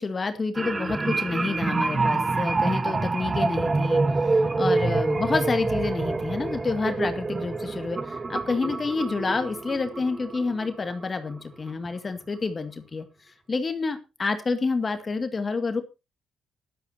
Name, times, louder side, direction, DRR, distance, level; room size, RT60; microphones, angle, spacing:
voice 1, 0.0-13.1 13.5-15.8, left 4 dB, 30° left, 8 dB, 2.1 m, -28 dB
sound 1, 0.5-11.3 11.7-11.9, right 3 dB, 25° right, 1.2 m, -26 dB
16.5 x 12.5 x 2.8 m, 0.27 s
cardioid pair, 105°, 0 cm